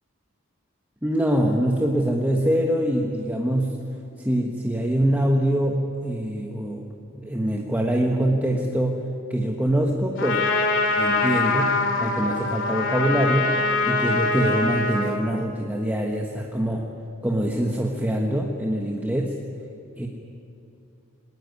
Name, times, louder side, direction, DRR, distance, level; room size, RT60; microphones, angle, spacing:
voice 1, 1.0-3.8 4.2-6.9 7.1-9.0 9.3-10.5 11.0-13.5 13.9-16.9 17.2-19.4 20.0-20.1, right 1 dB, 10° right, 0 dB, 1.4 m, -24 dB
Trumpet, 10.2-15.2, left 3 dB, 60° left, 2.9 m, -23 dB
20.5 x 19.0 x 9.7 m, 2.7 s
head